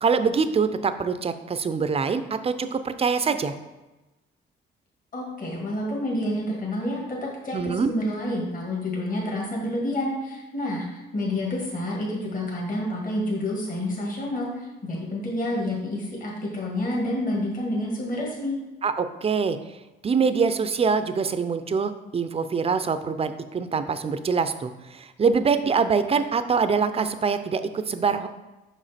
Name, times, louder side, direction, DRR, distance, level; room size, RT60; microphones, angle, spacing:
voice 1, 0.0-3.5 7.5-7.9 18.8-19.6 20.0-27.6 27.9-28.3, right 5 dB, 30° right, 10 dB, 0.5 m, -24 dB
voice 2, 5.1-18.6, left 1 dB, 45° left, -3 dB, 1.8 m, -29 dB
5.3 x 5.0 x 4.2 m, 1.1 s
cardioid pair, 90°, 20 cm